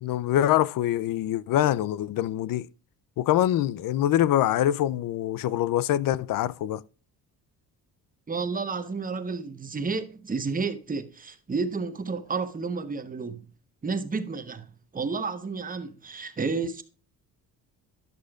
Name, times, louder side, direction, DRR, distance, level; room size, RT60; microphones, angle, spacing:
voice 1, 0.0-2.7 3.2-6.8, left 12 dB, 60° left, 0.5 m, -24 dB
voice 2, 8.3-13.5 13.8-16.8, right 4 dB, 20° right, 0.9 m, -31 dB
10.5 x 6.3 x 2.3 m
cardioid pair, 95°, 39 cm